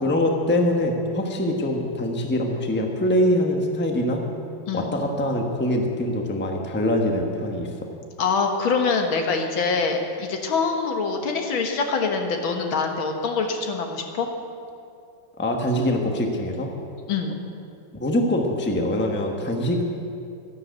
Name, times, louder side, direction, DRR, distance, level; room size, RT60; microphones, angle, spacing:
voice 1, 0.0-4.3 4.7-7.7 15.4-16.8 18.0-19.8, left 1 dB, 5° left, 2 dB, 1.0 m, -23 dB
voice 2, 8.2-14.3 17.1-17.4, left 4 dB, 70° left, 3 dB, 2.1 m, -24 dB
13.0 x 11.0 x 8.0 m, 2.5 s
omnidirectional pair, 2.3 m